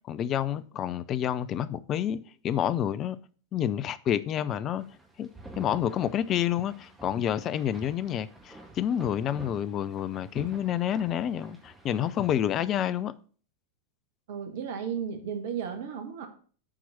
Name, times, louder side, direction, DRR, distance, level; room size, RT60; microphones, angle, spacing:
voice 1, 0.1-3.2 3.5-4.8 5.2-5.3 5.6-13.1, left 10 dB, 30° left, 0.5 m, -29 dB
sound 1, 4.8-12.7, right 2 dB, 10° right, 1.6 m, -48 dB
voice 2, 14.3-16.3, right 7 dB, 55° right, 1.7 m, -34 dB
7.3 x 4.6 x 6.8 m
figure-of-eight pair, 90°, 0 cm